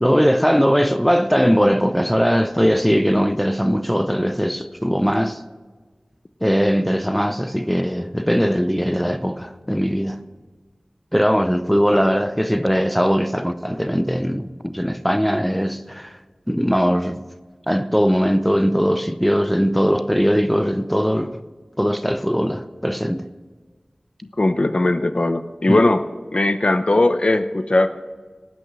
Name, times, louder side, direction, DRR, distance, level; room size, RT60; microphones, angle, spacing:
voice 1, 0.0-5.4 6.4-10.2 11.1-16.2 16.5-17.2 17.7-21.4 21.8-23.3 25.7-25.8, equal, 5° left, 0.6 m, -20 dB
voice 2, 24.4-26.0 26.3-27.9, left 2 dB, 50° left, 0.6 m, -18 dB
17.5 x 6.2 x 7.5 m
wide cardioid pair, 50°, 2 cm